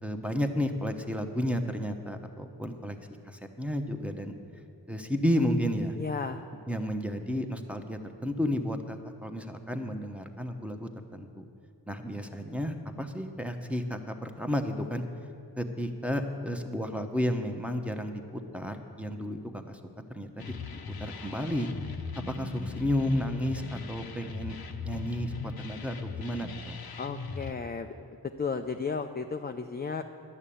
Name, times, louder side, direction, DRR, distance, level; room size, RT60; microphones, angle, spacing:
voice 1, 0.0-2.9 3.3-4.3 4.9-6.0 6.7-11.4 11.9-15.0 15.6-19.8 20.1-20.5 21.0-21.7 22.3-24.6 24.8-26.8, equal, 5° right, 5 dB, 1.0 m, -32 dB
voice 2, 6.0-6.4 27.0-27.9 28.4-30.0, left 5 dB, 25° left, 6 dB, 0.4 m, -33 dB
sound 1, 20.4-27.5, left 5 dB, 60° left, 0.8 m, -40 dB
11.0 x 6.5 x 8.6 m, 2.6 s
cardioid pair, 50°, 42 cm